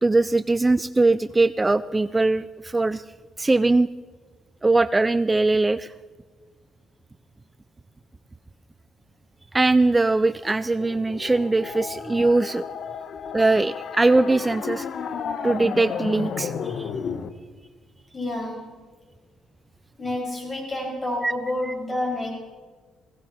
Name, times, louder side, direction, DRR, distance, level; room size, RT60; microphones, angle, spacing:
voice 1, 0.0-3.0 3.4-3.9 4.6-5.9 9.5-12.6 13.3-14.9 15.4-16.9 21.2-21.3, right 2 dB, 20° right, 15 dB, 0.4 m, -21 dB
sound 1, 10.8-17.3, left 6 dB, 65° left, 1.0 m, -32 dB
voice 2, 18.1-18.8 20.0-22.4, left 1 dB, 30° left, 0 dB, 6.5 m, -29 dB
17.0 x 16.5 x 4.5 m, 1.4 s
supercardioid pair, 70°, 0 cm